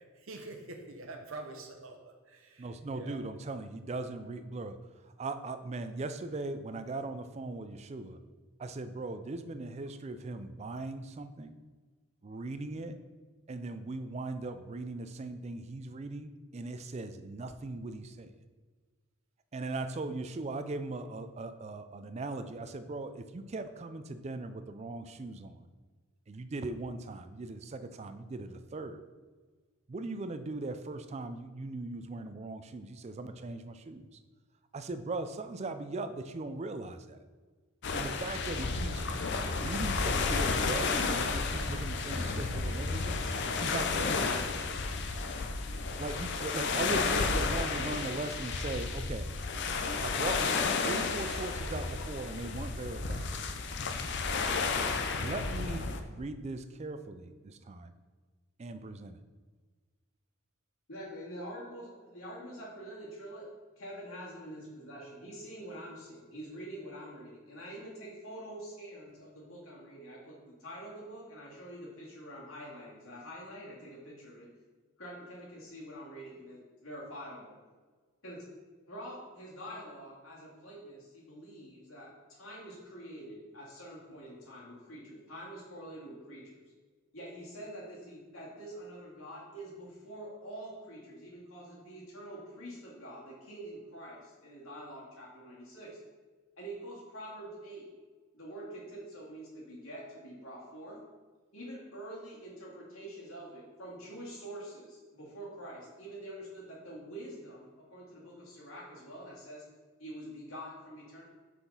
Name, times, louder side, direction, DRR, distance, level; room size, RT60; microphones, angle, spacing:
voice 1, 0.1-3.2, right 2 dB, 75° right, 4 dB, 0.9 m, -46 dB
voice 2, 2.6-4.7 5.2-8.2 8.6-11.5 12.2-12.9 13.5-18.0 19.5-25.5 26.3-29.0 29.9-34.0 34.7-37.0 37.9-39.0 39.6-43.2 43.6-44.3 46.0-49.3 50.0-50.4 50.8-53.3 55.2-55.8 56.1-57.2 57.7-57.8 58.6-59.1, right 2 dB, 30° right, 9 dB, 0.4 m, -39 dB
sound 1, 37.8-56.0, left 4 dB, 55° left, 0.5 m, -32 dB
voice 3, 60.9-63.5 63.8-74.5 75.0-77.6 78.2-78.4 78.9-86.6 87.1-96.0 96.6-97.9 98.3-101.0 101.5-109.6 110.0-111.2, right 1 dB, 80° left, -4 dB, 2.1 m, -46 dB
5.9 x 5.8 x 4.0 m, 1.4 s
head